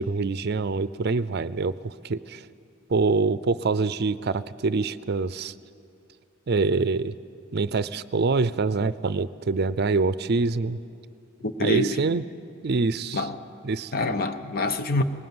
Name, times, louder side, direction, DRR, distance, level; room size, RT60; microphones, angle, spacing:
voice 1, 0.0-2.4 2.9-5.5 6.5-7.1 7.5-10.8 11.6-12.2 12.6-13.3 13.6-13.9, right 4 dB, 55° right, 0.5 m, -25 dB
voice 2, 11.4-12.0 13.1-13.3 13.9-15.0, left 2 dB, 50° left, 0.9 m, -26 dB
20.0 x 18.5 x 7.8 m
head